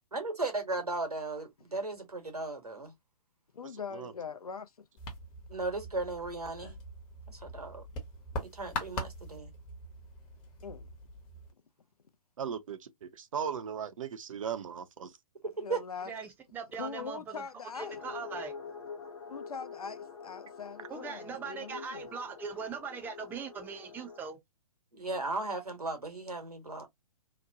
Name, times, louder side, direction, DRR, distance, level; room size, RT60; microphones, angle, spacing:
voice 1, 0.1-2.9 5.5-6.8 7.3-7.8 8.5-9.5 15.6-15.8 24.9-26.9, right 3 dB, 85° right, 1.2 m, -36 dB
voice 2, 3.5-4.9 10.6-10.9 15.6-16.1 16.8-18.0 19.3-22.1, left 6 dB, 75° left, 0.6 m, -42 dB
sound 1, 5.0-11.5, left 1 dB, 25° left, 0.9 m, -42 dB
voice 3, 12.4-15.1, right 7 dB, 60° right, 0.6 m, -37 dB
voice 4, 16.1-17.4 17.7-18.5 20.9-24.4, right 6 dB, 10° right, 0.5 m, -40 dB
sound 2, 17.8-24.2, left 5 dB, 50° left, 1.1 m, -46 dB
2.9 x 2.1 x 2.6 m
figure-of-eight pair, 120°, 19 cm